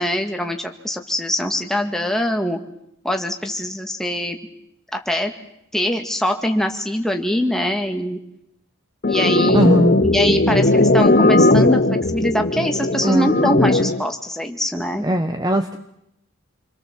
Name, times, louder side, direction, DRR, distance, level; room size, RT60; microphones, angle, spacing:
voice 1, 0.0-2.6 3.0-4.4 4.9-5.3 5.7-8.2 9.1-9.7 10.0-15.1, equal, ahead, 4 dB, 2.0 m, -23 dB
sound 1, 9.0-14.0, left 2 dB, 40° left, 0.9 m, -17 dB
voice 2, 9.5-10.0 13.0-13.3 15.0-15.8, equal, 20° right, 7 dB, 1.1 m, -18 dB
28.0 x 23.0 x 7.6 m, 0.78 s
head